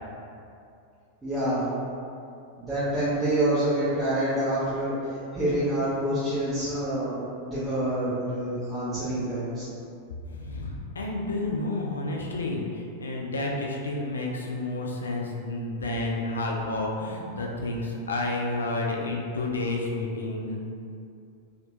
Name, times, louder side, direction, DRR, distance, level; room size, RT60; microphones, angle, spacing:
voice 1, 1.2-1.7 2.6-4.9 5.3-9.7, right 1 dB, 15° right, -14 dB, 1.0 m, -27 dB
voice 2, 10.3-20.6, left 2 dB, 70° left, -1 dB, 0.4 m, -30 dB
3.2 x 2.8 x 2.5 m, 2.5 s
figure-of-eight pair, 90°, 0 cm